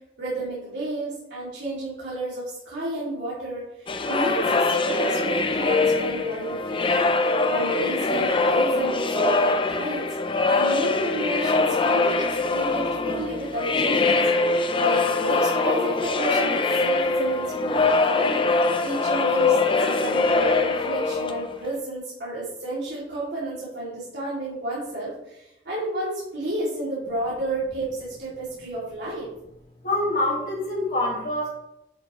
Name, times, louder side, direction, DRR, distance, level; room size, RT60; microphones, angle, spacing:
voice 1, 0.2-7.1 7.5-10.1 10.5-14.2 14.8-18.4 18.8-29.3, right 1 dB, 85° right, -8 dB, 2.6 m, -31 dB
sound 1, 3.9-21.7, left 3 dB, 30° left, 0.5 m, -23 dB
voice 2, 29.8-31.5, left 1 dB, 50° left, -7 dB, 1.8 m, -25 dB
10.0 x 5.7 x 3.1 m, 0.86 s
head